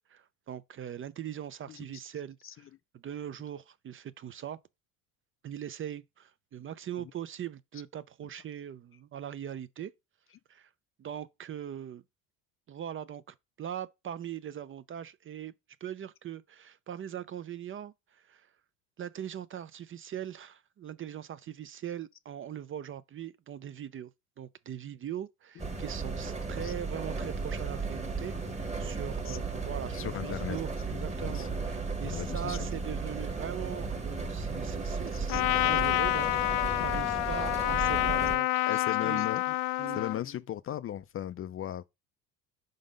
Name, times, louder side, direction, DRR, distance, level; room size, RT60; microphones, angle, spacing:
voice 1, 0.1-2.7 2.9-4.6 5.4-9.9 10.5-10.7 11.0-12.0 12.7-15.5 15.8-18.5 19.0-24.1 24.4-39.3 39.8-40.0, right 10 dB, 30° right, 0.5 m, -41 dB
sound 1, 25.6-38.4, right 4 dB, 15° right, 1.4 m, -35 dB
voice 2, 29.9-30.6 31.2-31.5 32.1-32.7 35.3-35.4 38.7-39.5 40.0-41.8, left 11 dB, 35° left, 0.4 m, -37 dB
Trumpet, 35.3-40.2, left 19 dB, 80° left, 0.6 m, -28 dB
5.1 x 3.9 x 5.2 m
supercardioid pair, 85°, 40 cm